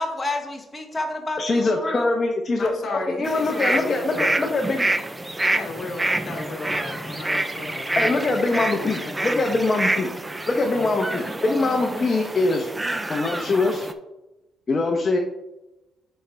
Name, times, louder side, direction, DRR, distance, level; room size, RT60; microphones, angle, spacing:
voice 1, 0.0-2.1, left 2 dB, 20° left, 2 dB, 1.2 m, -29 dB
voice 2, 1.4-2.7 3.1-4.8 7.9-10.1 10.5-12.7 13.1-13.9 14.7-15.2, left 3 dB, 35° left, 3 dB, 0.9 m, -23 dB
voice 3, 2.6-4.3 5.4-9.6, left 3 dB, 55° left, 2 dB, 1.5 m, -34 dB
sound 1, 3.2-13.9, right 2 dB, 15° right, 0.6 m, -27 dB
9.1 x 4.4 x 3.5 m, 0.98 s
cardioid pair, 90°, 0 cm